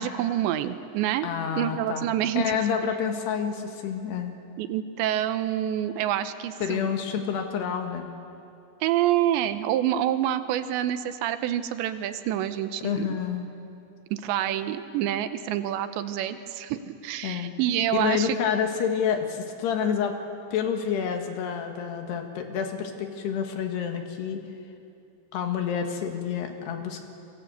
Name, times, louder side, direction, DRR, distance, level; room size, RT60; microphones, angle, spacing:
voice 1, 0.0-1.3 1.6-2.4 4.6-6.9 8.8-13.0 14.1-18.4, right 11 dB, 80° right, 10 dB, 3.1 m, -27 dB
voice 2, 1.2-2.1 2.4-4.3 6.6-8.1 12.8-13.5 17.2-17.5 18.0-20.2 20.5-24.4 25.3-27.0, left 7 dB, 65° left, 4 dB, 3.8 m, -28 dB
27.5 x 23.5 x 8.1 m, 2.7 s
omnidirectional pair, 5.3 m